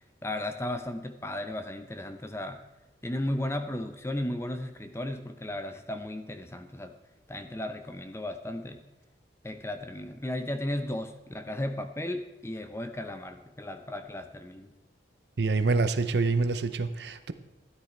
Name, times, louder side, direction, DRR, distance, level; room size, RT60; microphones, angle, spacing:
voice 1, 0.2-2.6 3.0-6.9 7.3-8.8 9.4-14.7, left 1 dB, 15° left, 8 dB, 0.6 m, -35 dB
voice 2, 15.4-17.3, right 3 dB, 65° right, 11 dB, 0.7 m, -26 dB
13.5 x 9.6 x 4.4 m, 0.99 s
head